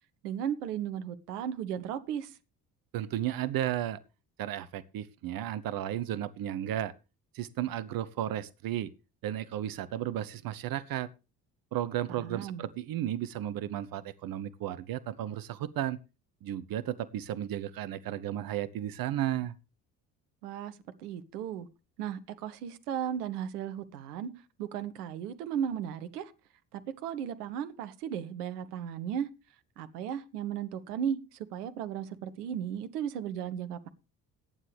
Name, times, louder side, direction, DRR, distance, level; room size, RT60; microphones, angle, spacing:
voice 1, 0.2-2.4 12.1-12.7 20.4-21.7 22.0-24.3 24.6-26.3 26.7-29.3 29.8-33.9, right 9 dB, 70° right, 1.2 m, -35 dB
voice 2, 2.9-4.0 4.4-6.9 7.3-8.9 9.2-11.1 11.7-16.0 16.4-19.6, right 12 dB, 45° right, 0.9 m, -34 dB
17.5 x 9.7 x 3.3 m
figure-of-eight pair, 50°, 49 cm